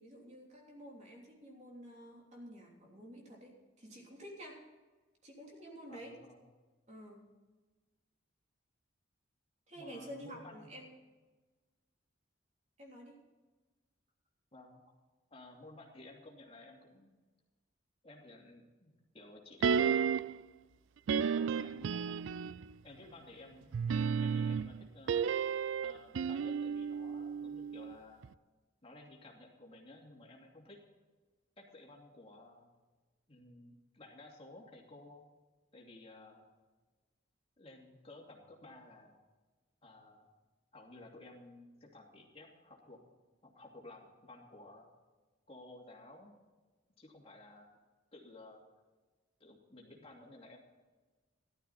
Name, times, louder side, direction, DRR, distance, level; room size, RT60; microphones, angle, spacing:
voice 1, 0.0-4.6 5.2-6.2 6.9-7.3 9.7-11.0 12.8-13.2, equal, 35° right, -1 dB, 3.2 m, -50 dB
voice 2, 5.9-6.4 9.7-10.8 14.5-14.8 15.3-17.1 18.0-20.2 21.2-22.2 22.8-23.7 24.2-25.3 25.8-28.2 28.8-30.8 31.6-32.7 33.3-35.2 35.7-36.5 37.6-39.2 39.8-40.3 40.7-43.0 43.4-44.9 45.5-46.3 47.0-47.7 48.1-48.6 49.4-50.6, left 2 dB, 30° left, -1 dB, 2.7 m, -54 dB
sound 1, 19.6-20.4 21.1-22.7 23.7-27.9 28.2-28.3, right 6 dB, 80° right, 0.3 m, -33 dB
14.5 x 12.5 x 4.2 m, 1.3 s
head